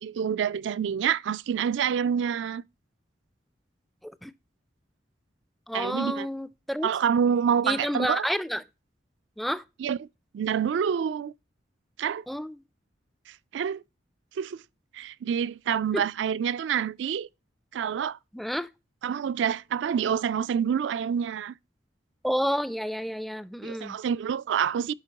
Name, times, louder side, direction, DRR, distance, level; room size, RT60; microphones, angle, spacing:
voice 1, 0.0-2.6 5.7-6.3 6.8-8.3 9.8-10.1 10.3-11.3 12.0-12.2 13.5-13.8 14.4-14.6 14.9-17.3 17.7-18.2 19.0-21.5 23.6-24.9, right 8 dB, 75° right, 0.3 m, -27 dB
voice 2, 5.7-6.9 7.6-8.6 9.4-9.6 12.3-12.6 15.9-16.0 18.3-18.7 22.2-24.0, equal, ahead, 0.3 m, -30 dB
11.5 x 4.4 x 2.8 m
head